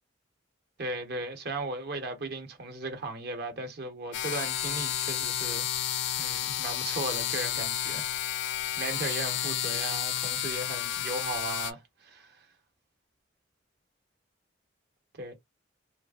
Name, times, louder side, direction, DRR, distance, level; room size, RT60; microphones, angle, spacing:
voice 1, 0.8-5.7 6.2-8.1 8.5-12.5 15.2-15.3, right 2 dB, 55° right, 0.9 m, -37 dB
sound 1, 4.1-11.7, left 11 dB, 60° left, 0.4 m, -31 dB
3.1 x 2.5 x 2.3 m
head